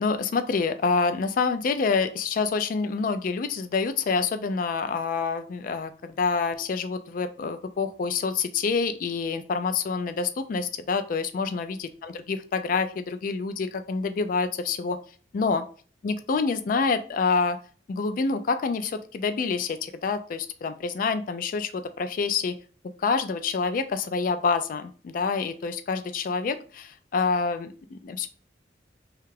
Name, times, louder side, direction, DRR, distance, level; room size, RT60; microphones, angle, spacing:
voice 1, 0.0-15.0 15.3-15.6 16.0-17.6 17.9-22.5 23.0-28.3, left 4 dB, 50° left, 10 dB, 0.3 m, -27 dB
3.2 x 2.4 x 3.2 m, 0.41 s
head